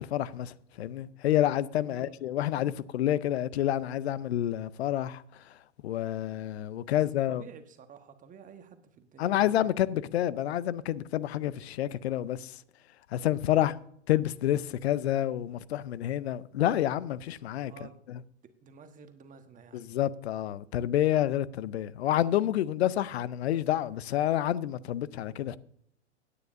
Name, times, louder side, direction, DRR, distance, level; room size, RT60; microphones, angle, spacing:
voice 1, 0.0-5.2 5.8-7.4 9.2-12.5 13.1-13.8 14.1-17.7 18.1-18.2 19.7-25.6, left 12 dB, 65° left, 0.7 m, -28 dB
voice 2, 7.3-9.8 13.5-13.8 17.6-18.0 18.6-19.8, right 6 dB, 20° right, 1.3 m, -51 dB
17.0 x 9.7 x 2.6 m
figure-of-eight pair, 100°, 35 cm